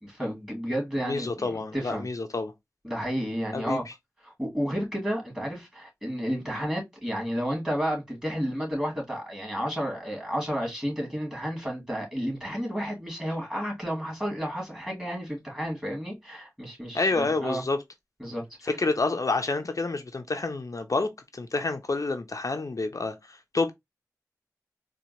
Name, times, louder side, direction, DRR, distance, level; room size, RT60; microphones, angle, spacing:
voice 1, 0.0-2.1 2.8-3.8 4.2-17.6 18.2-18.4, equal, 10° right, 2.3 m, -31 dB
voice 2, 1.0-2.5 3.5-3.8 16.9-17.8 18.6-23.7, left 3 dB, 60° left, 0.5 m, -28 dB
4.3 x 2.2 x 2.7 m
wide cardioid pair, 45°, 6 cm